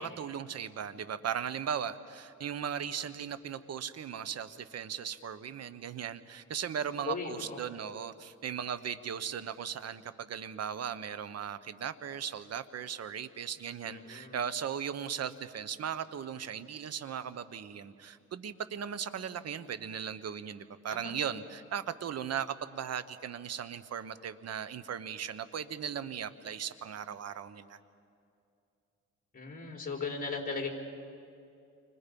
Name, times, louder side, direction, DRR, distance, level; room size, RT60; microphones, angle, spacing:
voice 1, 0.0-27.8, right 8 dB, 55° right, 14 dB, 1.2 m, -37 dB
voice 2, 7.0-7.6 13.8-14.4 20.9-21.1 29.3-30.7, left 4 dB, 30° left, 1 dB, 4.4 m, -37 dB
29.5 x 25.5 x 5.4 m, 2.5 s
cardioid pair, 90°, 30 cm